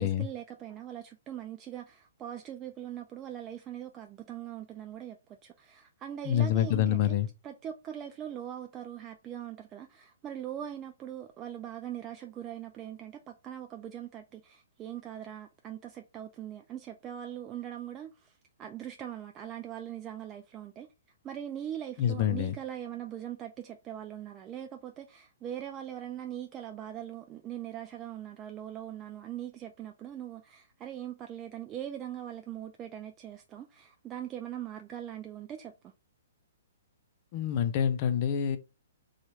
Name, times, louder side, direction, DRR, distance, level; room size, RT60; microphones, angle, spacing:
voice 1, 0.0-7.1 7.4-20.9 21.2-35.9, right 10 dB, 25° right, 0.3 m, -41 dB
voice 2, 6.2-7.3 22.0-22.5 37.3-38.6, left 10 dB, 40° left, 0.5 m, -27 dB
3.0 x 2.4 x 4.3 m
hypercardioid pair, 125°, 0 cm